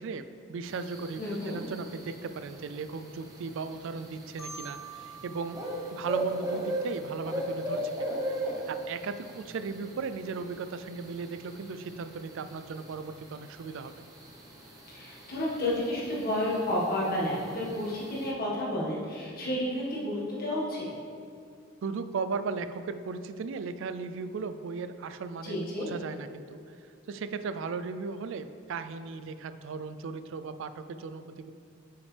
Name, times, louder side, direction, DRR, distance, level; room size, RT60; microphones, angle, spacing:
voice 1, 0.0-5.6 5.9-8.0 8.7-13.9 21.8-26.6 27.1-31.5, right 4 dB, 65° right, 11 dB, 0.4 m, -36 dB
sound 1, 0.6-18.3, right 1 dB, 20° right, 0.9 m, -39 dB
voice 2, 1.2-1.6 14.9-20.9 25.4-25.9, left 1 dB, 45° left, -5 dB, 1.7 m, -31 dB
Marimba xylophone, 4.4-7.2, right 4 dB, 85° left, 1.7 m, -47 dB
8.5 x 5.7 x 3.3 m, 2.4 s
head